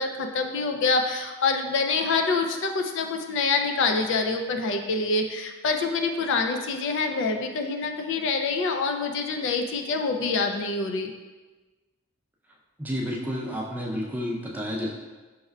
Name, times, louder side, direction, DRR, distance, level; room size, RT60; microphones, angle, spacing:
voice 1, 0.0-11.1, left 4 dB, 60° left, 5 dB, 0.4 m, -26 dB
voice 2, 12.8-14.9, equal, 10° right, -2 dB, 0.4 m, -30 dB
5.3 x 3.4 x 2.2 m, 1.3 s
head